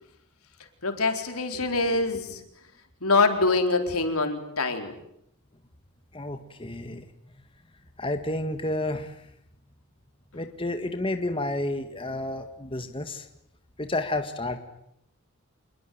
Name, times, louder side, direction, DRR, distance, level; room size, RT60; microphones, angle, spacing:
voice 1, 0.8-2.4 3.0-4.9, left 3 dB, 85° left, 6 dB, 4.4 m, -24 dB
voice 2, 6.1-7.0 8.0-9.2 10.3-13.3 13.8-14.6, left 1 dB, 25° left, 7 dB, 1.8 m, -30 dB
27.5 x 22.0 x 9.5 m, 0.78 s
head